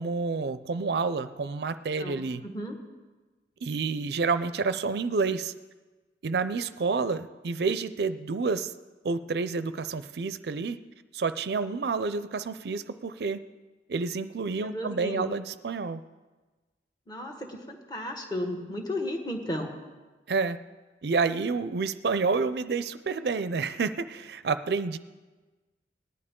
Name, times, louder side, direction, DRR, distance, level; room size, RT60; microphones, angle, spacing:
voice 1, 0.0-2.4 3.6-5.5 6.2-8.7 9.0-10.8 11.1-13.4 13.9-16.0 20.3-20.6 21.0-25.0, right 4 dB, 65° right, 12 dB, 0.4 m, -29 dB
voice 2, 2.0-2.8 14.6-15.2 17.1-19.7, left 1 dB, 25° left, 3 dB, 1.5 m, -34 dB
19.0 x 11.0 x 3.7 m, 1.3 s
head